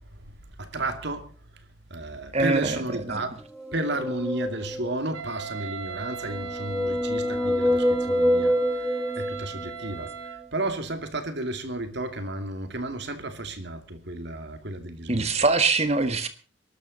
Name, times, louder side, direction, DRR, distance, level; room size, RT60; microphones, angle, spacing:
voice 1, 0.1-1.6 1.9-3.4 3.7-15.3, right 2 dB, 55° right, 2.5 m, -33 dB
voice 2, 2.3-2.8 3.1-3.2 15.1-16.3, right 3 dB, 30° right, 1.7 m, -23 dB
sound 1, 3.6-5.2 6.0-9.9, left 1 dB, ahead, 0.9 m, -26 dB
Wind instrument woodwind instrument, 5.1-10.5, right 7 dB, 80° right, 1.4 m, -38 dB
22.5 x 12.5 x 4.1 m
head